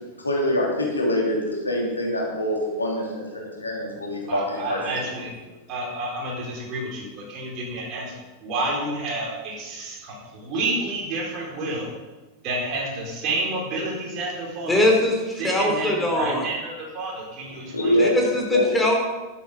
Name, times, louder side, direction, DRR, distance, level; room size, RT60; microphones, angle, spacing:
voice 1, 0.2-5.2 17.7-18.1 18.5-18.7, left 1 dB, 80° left, -2 dB, 2.9 m, -24 dB
voice 2, 4.3-5.3 5.7-11.9 12.4-14.9 15.4-18.1, right 2 dB, 40° right, -2 dB, 4.3 m, -30 dB
voice 3, 14.7-16.4 18.0-18.9, left 1 dB, 10° left, 0 dB, 3.1 m, -22 dB
11.5 x 10.0 x 5.1 m, 1.2 s
figure-of-eight pair, 90°, 0 cm